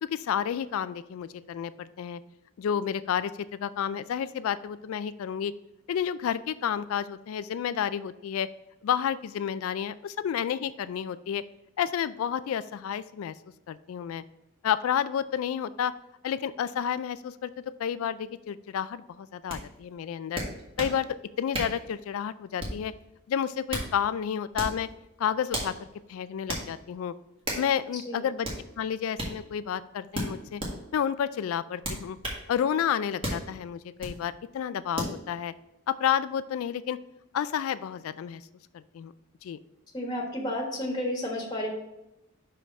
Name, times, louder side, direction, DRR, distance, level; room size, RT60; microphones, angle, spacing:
voice 1, 0.0-2.2 2.6-5.5 5.9-8.5 8.8-11.4 11.8-13.3 13.7-14.2 14.6-15.9 16.2-17.5 17.8-20.4 20.8-21.1 21.4-22.9 23.3-24.9 25.2-25.7 26.1-27.1 27.5-28.5 28.8-30.6 30.9-32.2 32.5-35.5 35.9-37.0 37.3-38.4 38.7-39.1 39.4-39.6, left 8 dB, 75° left, 15 dB, 0.3 m, -30 dB
sound 1, 19.5-19.6 20.4-21.0 21.5-21.8 22.6-22.9 23.5-23.9 24.5-24.8 25.5-25.7 26.5-26.7 27.4-27.7 28.4-28.6 29.2-29.3 30.1-30.7 31.8-32.4 33.2-33.4 34.0-34.2 35.0-35.2, right 1 dB, 25° right, 1.6 m, -33 dB
voice 2, 39.9-41.8, left 1 dB, 20° left, -1 dB, 1.4 m, -31 dB
5.7 x 5.1 x 4.6 m, 0.94 s
head